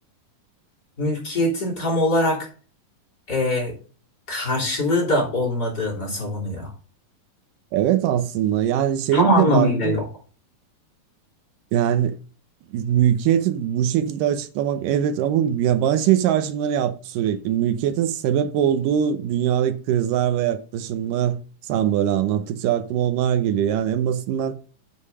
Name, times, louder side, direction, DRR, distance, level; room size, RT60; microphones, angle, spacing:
voice 1, 1.0-2.5 3.3-3.7 4.3-6.7 9.1-10.1, left 1 dB, 30° left, 3.7 m, -22 dB
voice 2, 7.7-10.0 11.7-12.2 12.7-24.6, right 10 dB, 80° right, 2.4 m, -22 dB
8.4 x 5.3 x 5.4 m
omnidirectional pair, 3.8 m